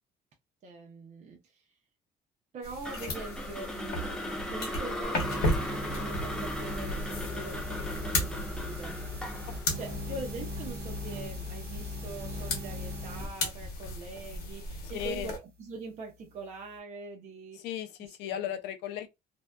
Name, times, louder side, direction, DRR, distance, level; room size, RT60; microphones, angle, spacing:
voice 1, 0.6-1.6 2.5-9.1 9.8-17.6 18.0-18.6, right 3 dB, 45° right, 0.6 m, -43 dB
sound 1, 2.6-15.4, left 2 dB, 65° left, 1.1 m, -36 dB
sound 2, 2.8-11.0, left 1 dB, 5° left, 0.5 m, -38 dB
sound 3, 5.0-13.3, left 1 dB, 65° right, 1.0 m, -39 dB
voice 2, 14.9-15.3 17.5-19.1, left 11 dB, 90° left, 0.4 m, -36 dB
2.6 x 2.2 x 2.2 m
cardioid pair, 110°, 17 cm